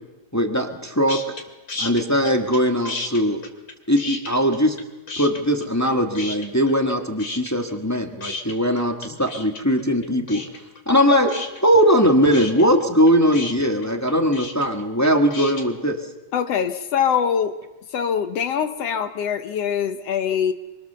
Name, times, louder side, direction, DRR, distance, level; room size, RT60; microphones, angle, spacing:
voice 1, 0.3-1.4 1.8-3.4 3.9-4.8 5.2-10.4 10.9-11.4 11.6-16.0, equal, 10° left, 4 dB, 0.8 m, -20 dB
sound 1, 1.1-1.4 1.7-2.6 2.9-4.8 5.1-5.9 6.2-6.9 7.2-15.6, left 3 dB, 35° left, 2.4 m, -33 dB
voice 2, 16.3-17.6 17.9-20.5, left 8 dB, 65° left, 9 dB, 1.9 m, -23 dB
25.0 x 24.5 x 6.8 m, 1.0 s
omnidirectional pair, 3.3 m